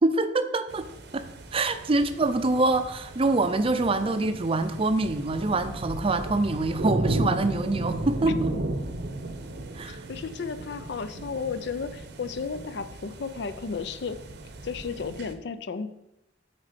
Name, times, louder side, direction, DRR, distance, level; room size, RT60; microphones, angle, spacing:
voice 1, 0.0-0.9 1.1-1.2 1.5-8.5 9.7-10.0, right 2 dB, 30° right, 10 dB, 0.5 m, -25 dB
sound 1, 0.7-15.3, right 1 dB, 65° right, 0.8 m, -35 dB
voice 2, 9.8-14.2 14.6-15.9, left 5 dB, 65° left, 12 dB, 0.5 m, -33 dB
8.4 x 4.4 x 5.0 m, 0.89 s
head